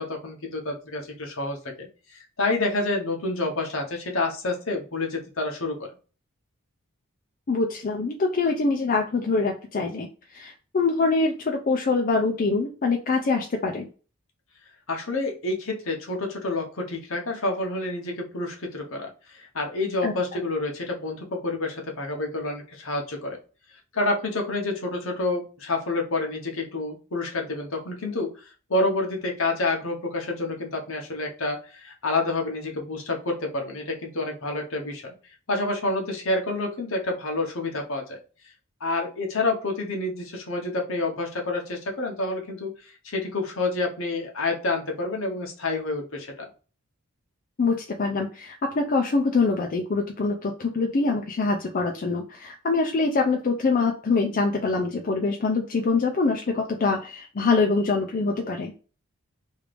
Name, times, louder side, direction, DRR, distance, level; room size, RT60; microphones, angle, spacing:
voice 1, 0.0-5.9 14.9-23.4 23.9-35.1 35.5-38.2 38.8-46.5, left 2 dB, 65° left, 1 dB, 1.0 m, -28 dB
voice 2, 7.5-13.9 20.0-20.1 47.6-58.7, left 3 dB, 40° left, 2 dB, 0.4 m, -24 dB
3.1 x 2.5 x 3.3 m, 0.36 s
head